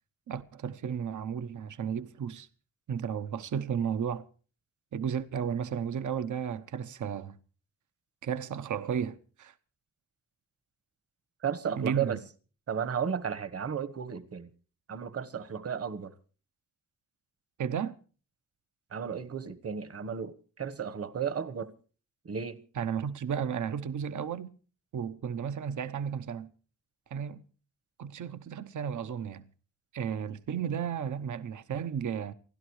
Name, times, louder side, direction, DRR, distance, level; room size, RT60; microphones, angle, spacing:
voice 1, 0.3-2.5 2.9-4.3 4.9-7.4 8.2-9.5 11.8-12.1 17.6-17.9 22.7-24.5 24.9-26.5 27.1-27.4 28.0-29.5 29.9-32.3, right 7 dB, 65° right, 1.0 m, -33 dB
voice 2, 11.4-12.2 12.7-14.5 14.9-16.1 18.9-21.7 22.2-22.6, right 7 dB, 45° right, 1.4 m, -34 dB
29.0 x 11.5 x 3.2 m
cardioid pair, 95°, 32 cm